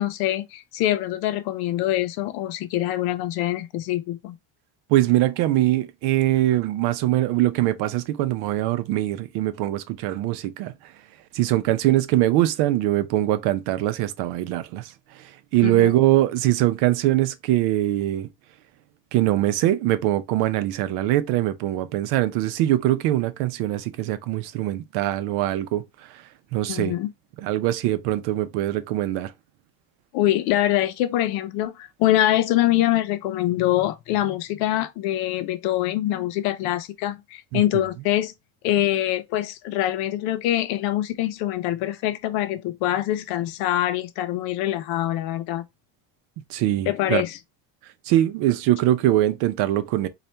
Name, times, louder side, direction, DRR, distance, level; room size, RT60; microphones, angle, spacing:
voice 1, 0.0-4.4 15.6-15.9 26.7-27.1 30.1-38.3 38.6-45.6 46.9-47.4, left 14 dB, 75° left, 0.7 m, -24 dB
voice 2, 4.9-10.7 11.3-14.9 15.2-18.3 19.1-25.8 26.5-26.9 27.4-29.3 37.5-37.6 46.5-47.2 48.1-50.1, right 14 dB, 85° right, 0.7 m, -22 dB
4.1 x 2.4 x 3.3 m
cardioid pair, 165°, 38 cm